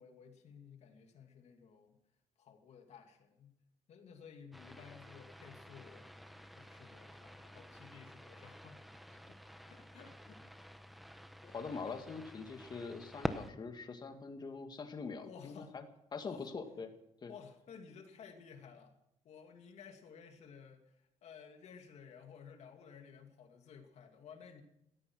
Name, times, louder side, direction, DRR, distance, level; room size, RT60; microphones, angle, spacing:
voice 1, 0.0-1.9 2.4-3.5 3.9-6.1 6.3-8.8 9.1-9.4 9.7-10.7 15.2-15.7 16.2-16.5 17.3-18.9 19.2-24.6, left 6 dB, 60° left, 4 dB, 2.5 m, -55 dB
sound 1, 4.5-13.5, equal, ahead, 0.9 m, -47 dB
voice 2, 11.4-15.8 16.1-16.9 17.2-17.3, left 4 dB, 35° left, 6 dB, 2.0 m, -44 dB
16.5 x 13.0 x 6.2 m, 0.80 s
cardioid pair, 130°, 13 cm